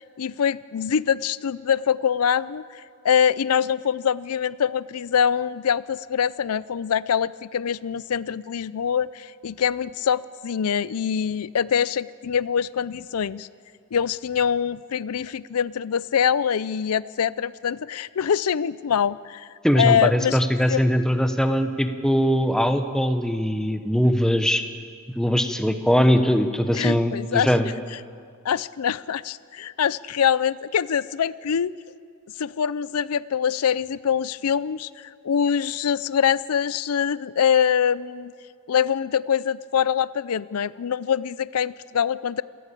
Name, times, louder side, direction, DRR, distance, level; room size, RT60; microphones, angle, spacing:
voice 1, 0.2-13.5 13.9-19.5 19.8-20.4 20.7-20.8 26.7-27.5 28.4-31.7 32.4-38.3 38.7-42.4, left 8 dB, 85° left, 19 dB, 0.5 m, -24 dB
voice 2, 19.6-24.6 25.2-27.7, equal, 5° left, 7 dB, 1.0 m, -21 dB
27.5 x 14.0 x 8.5 m, 2.2 s
head